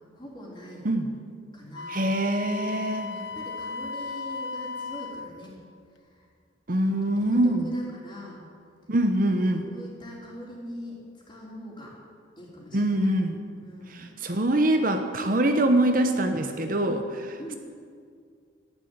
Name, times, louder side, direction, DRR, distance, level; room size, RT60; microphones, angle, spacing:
voice 1, 0.2-0.8 1.5-2.0 2.8-5.5 6.8-8.4 9.6-11.0 11.3-11.9 12.4-13.1 13.6-14.1 17.4-17.6, equal, 25° left, -4 dB, 3.7 m, -42 dB
Wind instrument woodwind instrument, 1.7-5.3, left 4 dB, 75° left, 0.7 m, -36 dB
voice 2, 1.9-3.1 6.7-7.7 8.9-9.6 12.7-13.4 13.9-17.5, right 1 dB, 45° right, 6 dB, 0.9 m, -24 dB
12.5 x 11.5 x 8.1 m, 2.1 s
head